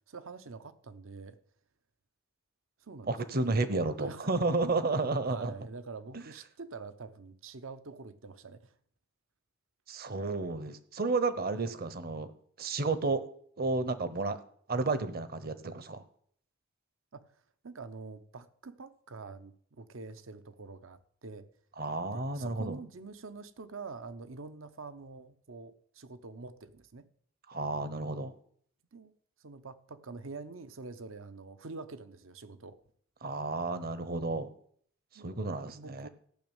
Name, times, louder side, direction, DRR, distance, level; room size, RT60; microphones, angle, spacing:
voice 1, 0.1-1.4 2.8-3.7 4.0-4.3 4.6-4.7 5.3-8.8 17.1-17.3 17.6-21.5 22.1-27.1 28.9-29.1 29.4-32.8 35.1-35.4 35.7-36.1, right 4 dB, 75° right, 0.8 m, -46 dB
voice 2, 3.1-5.5 6.1-6.2 9.9-12.3 12.6-13.2 13.6-14.4 14.7-16.0 21.8-22.8 27.5-28.3 33.2-34.5 35.2-36.1, right 3 dB, 50° right, 1.0 m, -32 dB
14.0 x 6.2 x 8.9 m
head